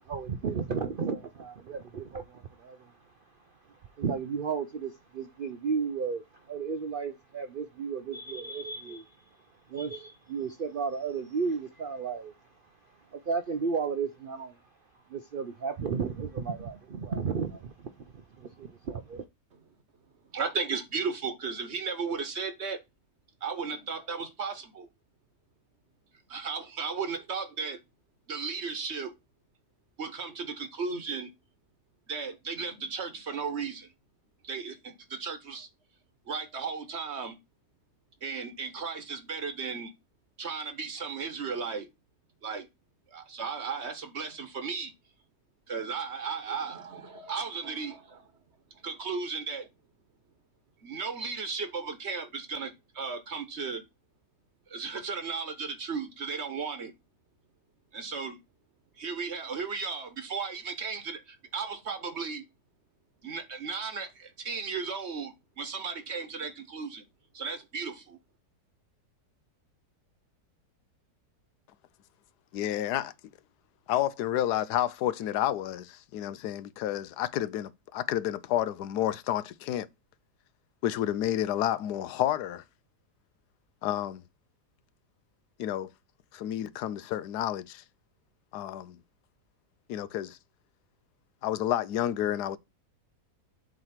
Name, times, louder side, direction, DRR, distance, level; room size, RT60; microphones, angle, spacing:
voice 1, 0.0-3.1 3.5-14.6 15.1-19.3, right 5 dB, 85° right, 0.4 m, -34 dB
voice 2, 20.3-22.8 23.4-24.9 26.3-27.8 28.3-29.1 30.0-31.3 32.1-33.9 34.4-35.7 36.3-37.4 38.2-39.9 40.4-41.9 42.4-42.7 43.1-44.9 45.7-48.2 48.8-49.7 50.8-53.8 54.7-56.9 57.9-58.4 59.0-62.4 63.2-67.0 67.3-68.2, right 5 dB, 45° right, 1.2 m, -35 dB
voice 3, 72.5-73.1 73.9-79.9 80.8-82.6 83.8-84.2 85.6-85.9 86.3-87.8 88.5-89.0 89.9-90.4 91.4-92.6, left 12 dB, 80° left, 1.2 m, -30 dB
7.5 x 3.1 x 5.7 m
omnidirectional pair, 1.7 m